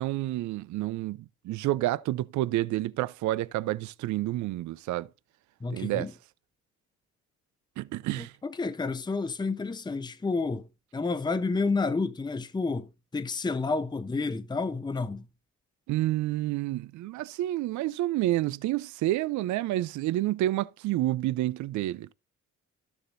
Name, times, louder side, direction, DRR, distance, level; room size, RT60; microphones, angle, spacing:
voice 1, 0.0-5.1 5.7-6.1 7.8-8.3 15.9-22.1, right 15 dB, 70° right, 0.5 m, -29 dB
voice 2, 5.6-6.1 8.2-10.6 10.9-12.9 13.1-15.2, left 3 dB, 15° left, 0.7 m, -30 dB
12.5 x 7.1 x 2.5 m
cardioid pair, 90°, 30 cm